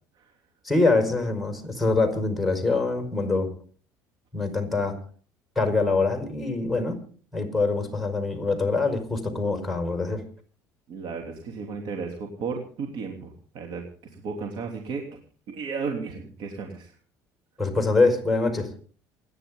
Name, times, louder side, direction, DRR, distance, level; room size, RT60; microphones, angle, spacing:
voice 1, 0.6-3.5 4.3-5.0 5.6-7.0 7.3-10.2 17.6-18.7, left 3 dB, ahead, 5 dB, 5.5 m, -24 dB
voice 2, 10.9-15.2 15.5-16.9, right 5 dB, 65° right, 2 dB, 3.2 m, -34 dB
28.0 x 10.5 x 3.9 m, 0.42 s
hypercardioid pair, 75°, 9 cm